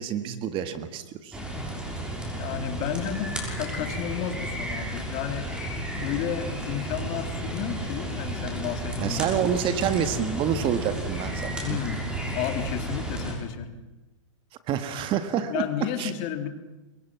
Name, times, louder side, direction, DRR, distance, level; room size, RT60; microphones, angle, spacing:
voice 1, 0.0-1.4 9.0-11.8 14.7-15.6 16.0-16.1, right 9 dB, 30° right, 9 dB, 1.8 m, -28 dB
sound 1, 1.3-13.3, right 1 dB, 5° right, 6.3 m, -33 dB
voice 2, 2.3-5.5 6.0-9.5 11.6-13.8 15.5-16.5, left 9 dB, 40° left, 7 dB, 2.7 m, -32 dB
29.0 x 23.5 x 6.1 m, 1.1 s
hypercardioid pair, 125°, 16 cm